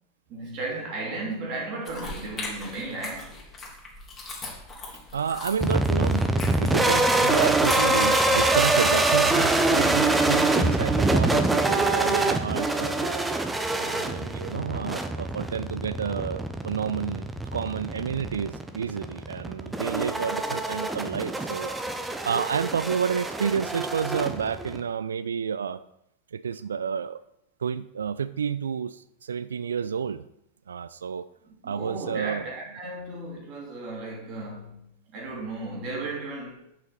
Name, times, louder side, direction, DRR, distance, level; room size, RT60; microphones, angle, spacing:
voice 1, 0.3-3.4 31.4-36.6, right 2 dB, 40° right, 2.7 m, -35 dB
sound 1, 1.9-8.7, left 3 dB, 20° left, 2.3 m, -39 dB
voice 2, 5.1-13.2 13.8-21.7 22.0-25.8 26.3-27.2 27.6-30.3 30.7-31.2 31.6-32.4, right 7 dB, 70° right, 0.3 m, -30 dB
sound 2, 5.6-24.8, right 2 dB, 10° right, 0.7 m, -25 dB
7.0 x 5.6 x 5.7 m
figure-of-eight pair, 90°, 0 cm